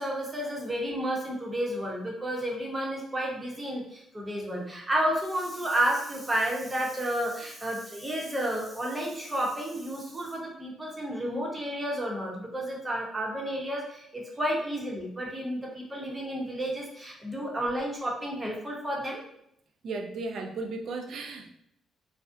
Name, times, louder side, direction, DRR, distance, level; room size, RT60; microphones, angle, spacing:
voice 1, 0.0-19.2, right 1 dB, 15° right, -2 dB, 0.7 m, -31 dB
voice 2, 19.8-21.5, right 3 dB, 65° right, 4 dB, 0.4 m, -35 dB
2.4 x 2.0 x 2.5 m, 0.76 s
cardioid pair, 90°, 0 cm